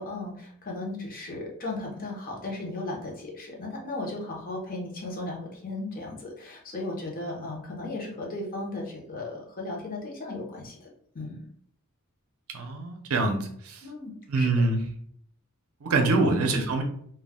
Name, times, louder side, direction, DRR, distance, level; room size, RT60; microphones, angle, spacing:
voice 1, 0.0-10.9 11.1-11.4 13.8-14.5 16.3-16.6, left 2 dB, 40° left, -1 dB, 0.7 m, -36 dB
voice 2, 12.5-13.8 14.3-14.8 15.8-16.8, right 3 dB, 70° right, 4 dB, 0.5 m, -25 dB
2.2 x 2.1 x 3.4 m, 0.65 s
head